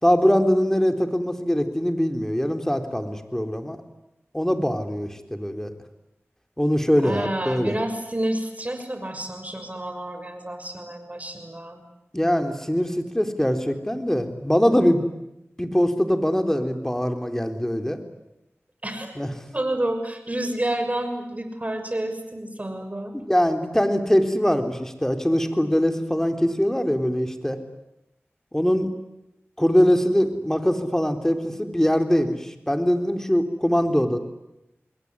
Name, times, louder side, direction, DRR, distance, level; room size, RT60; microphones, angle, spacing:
voice 1, 0.0-3.8 4.3-5.7 6.6-7.7 12.1-15.0 15.6-18.0 19.2-19.3 23.1-27.6 28.5-28.9 29.6-34.2, equal, 10° left, 6 dB, 3.9 m, -22 dB
voice 2, 7.0-11.8 18.8-19.1 19.5-23.1, right 1 dB, 30° right, 7 dB, 6.7 m, -29 dB
28.0 x 21.5 x 9.9 m, 0.89 s
cardioid pair, 40°, 5 cm